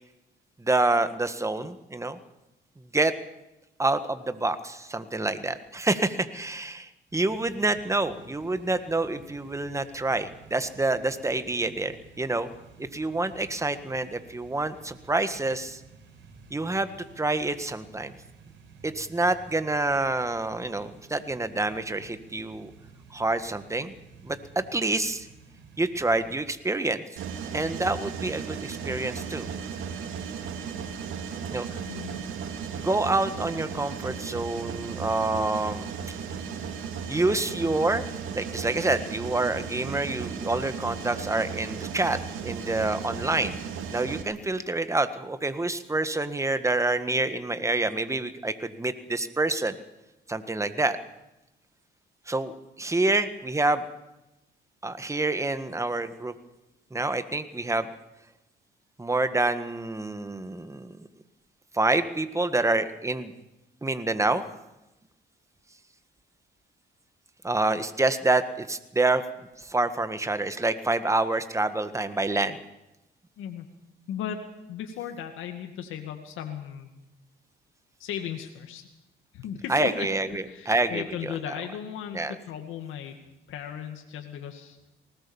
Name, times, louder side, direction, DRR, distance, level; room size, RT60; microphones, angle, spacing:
voice 1, 0.6-2.2 2.9-3.1 3.8-12.5 12.8-15.8 16.5-16.9 17.2-18.1 18.8-22.7 23.1-23.9 24.2-25.3 25.8-27.0 27.5-29.5 31.5-31.8 32.7-35.9 37.1-38.1 38.3-43.6 43.9-49.8 50.3-51.0 52.3-52.5 52.8-53.8 54.8-56.3 56.9-57.9 59.0-61.1 61.7-63.3 63.8-64.4 67.4-69.2 69.6-72.6 79.7-81.3 82.1-82.3, right 2 dB, 15° right, 10 dB, 1.6 m, -27 dB
sound 1, 7.1-26.5, right 5 dB, 70° right, 5.7 m, -52 dB
Mechanisms, 27.2-44.2, right 6 dB, 85° right, 2.8 m, -36 dB
voice 2, 31.9-32.2 73.4-73.7 74.1-74.4 74.7-76.9 78.0-78.9 79.3-80.1 80.5-83.2 83.5-84.9, left 9 dB, 85° left, 4 dB, 2.2 m, -36 dB
20.0 x 18.5 x 7.2 m, 0.95 s
cardioid pair, 90°, 20 cm